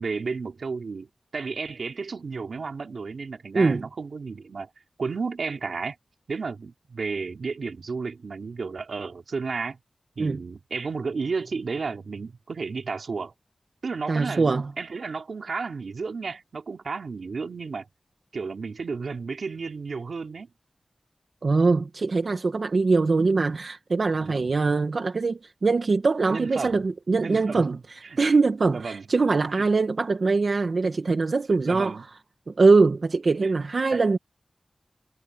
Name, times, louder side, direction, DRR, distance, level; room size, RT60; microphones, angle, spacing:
voice 1, 0.0-4.7 5.0-6.0 6.3-9.8 10.2-13.3 13.8-17.9 18.3-20.5 24.2-24.5 26.3-26.8 27.2-27.7 28.0-28.2 28.7-29.0 29.6-29.7 31.6-32.0 33.4-33.5 33.9-34.0, right 4 dB, 80° right, 3.2 m, -32 dB
voice 2, 3.5-3.9 10.2-10.4 14.1-14.7 21.4-32.1 32.5-34.2, right 3 dB, 60° right, 1.4 m, -22 dB
wide cardioid pair, 90°, 0 cm